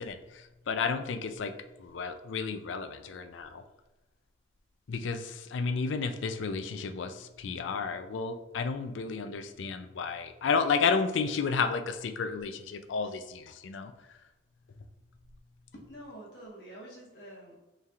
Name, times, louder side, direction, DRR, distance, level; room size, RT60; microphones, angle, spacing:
voice 1, 0.0-1.5 1.8-3.6 4.9-14.2, left 5 dB, 80° left, 8 dB, 0.4 m, -32 dB
voice 2, 15.7-17.6, right 1 dB, 60° left, -2 dB, 1.2 m, -47 dB
5.4 x 3.3 x 2.4 m, 1.0 s
head